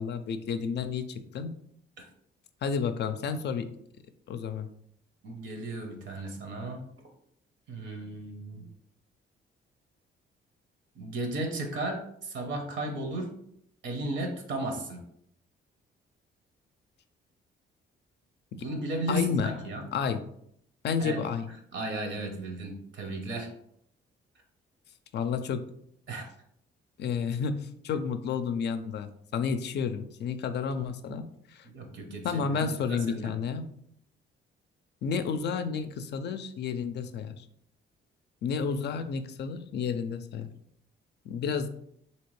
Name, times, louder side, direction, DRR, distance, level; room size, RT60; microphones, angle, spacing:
voice 1, 0.0-1.5 2.6-3.7 4.3-4.7 19.1-19.5 19.9-20.2 20.8-21.5 25.1-25.6 27.0-29.1 29.3-31.6 32.2-33.6 35.0-37.4 38.4-40.5 41.3-41.7, left 6 dB, 60° left, 9 dB, 0.4 m, -31 dB
voice 2, 5.2-6.8 7.7-8.7 11.0-13.3 13.8-15.0 18.5-19.9 21.0-21.3 21.7-23.5 26.1-26.3 31.7-33.4, right 2 dB, 70° right, 4 dB, 0.9 m, -35 dB
3.3 x 2.8 x 3.2 m, 0.71 s
cardioid pair, 90°, 20 cm